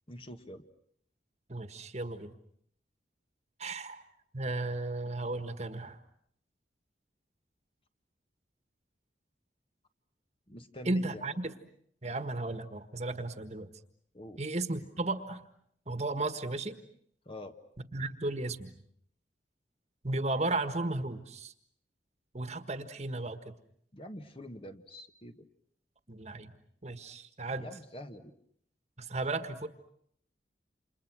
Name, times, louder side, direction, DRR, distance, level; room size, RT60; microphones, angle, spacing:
voice 1, 0.1-0.6 10.5-11.3 14.1-14.4 17.2-17.6 23.9-25.5 27.5-28.3, left 1 dB, 30° left, 7 dB, 1.5 m, -46 dB
voice 2, 1.5-2.3 3.6-4.0 4.3-6.0 10.8-11.5 12.0-13.7 14.4-15.4 15.9-16.8 17.9-18.7 20.0-21.5 22.3-23.5 26.1-26.5 26.8-27.7 29.0-29.7, right 2 dB, 40° right, 10 dB, 1.6 m, -34 dB
29.5 x 28.0 x 6.2 m, 0.69 s
head